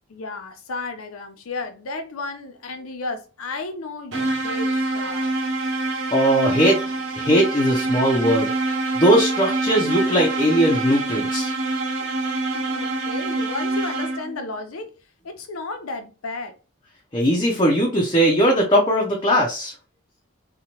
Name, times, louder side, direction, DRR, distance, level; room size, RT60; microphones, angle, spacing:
voice 1, 0.1-5.3 12.5-14.9 15.2-16.6, left 3 dB, 85° left, 0.6 m, -33 dB
sound 1, 4.1-14.5, right 2 dB, 60° right, 0.7 m, -25 dB
voice 2, 6.1-6.8 7.1-8.5 9.0-11.5 17.1-19.7, equal, 20° left, 0.4 m, -19 dB
2.8 x 2.1 x 2.7 m
head